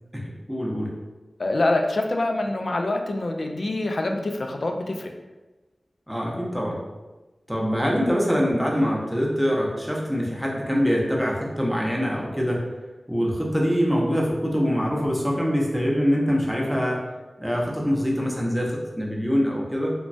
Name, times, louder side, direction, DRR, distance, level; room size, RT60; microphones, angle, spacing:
voice 1, 0.1-0.9 6.1-6.8 7.5-12.6 13.1-17.0 17.4-19.9, equal, ahead, -3 dB, 0.6 m, -24 dB
voice 2, 1.4-5.1, left 2 dB, 60° left, 3 dB, 0.3 m, -25 dB
3.0 x 2.2 x 2.6 m, 1.2 s
wide cardioid pair, 85°, 0 cm